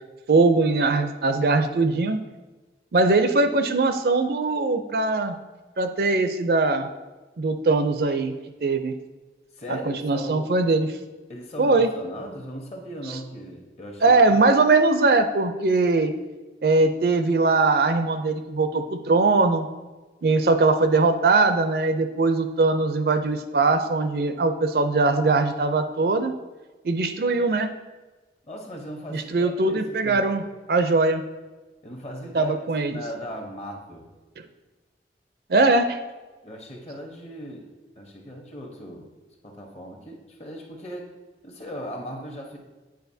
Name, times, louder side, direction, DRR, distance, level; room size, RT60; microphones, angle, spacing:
voice 1, 0.3-2.2 2.9-5.3 5.8-6.9 7.4-8.3 8.6-8.9 9.7-10.9 11.6-11.9 14.0-16.1 16.6-19.7 20.2-26.3 26.8-27.7 29.1-30.4 30.7-31.2 32.3-33.0 35.5-36.0, right 3 dB, 60° right, 8 dB, 0.4 m, -21 dB
voice 2, 9.6-10.5 11.3-14.4 28.5-30.4 31.8-32.6 32.9-34.1 36.4-37.7 38.0-39.1 39.4-41.1 41.4-42.6, equal, 35° left, 1 dB, 0.9 m, -38 dB
9.0 x 4.7 x 2.7 m, 1.2 s
head